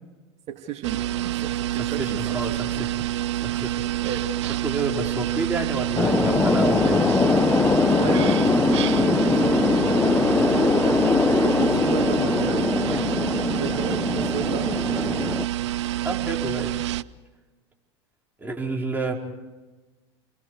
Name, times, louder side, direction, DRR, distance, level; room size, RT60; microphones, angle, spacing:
voice 1, 0.5-2.2 2.5-2.6 4.0-4.3 7.9-12.7 13.3-15.2, right 7 dB, 50° right, 3 dB, 2.6 m, -32 dB
sound 1, 0.8-17.0, right 14 dB, 75° right, 0.6 m, -27 dB
voice 2, 1.7-2.9 3.4-4.0 4.6-7.2 16.0-16.8 18.4-19.1, right 3 dB, 10° right, 0 dB, 4.9 m, -30 dB
sound 2, 6.0-15.5, left 4 dB, 15° left, 0.8 m, -22 dB
29.5 x 22.5 x 4.9 m, 1.2 s
hypercardioid pair, 80°, 15 cm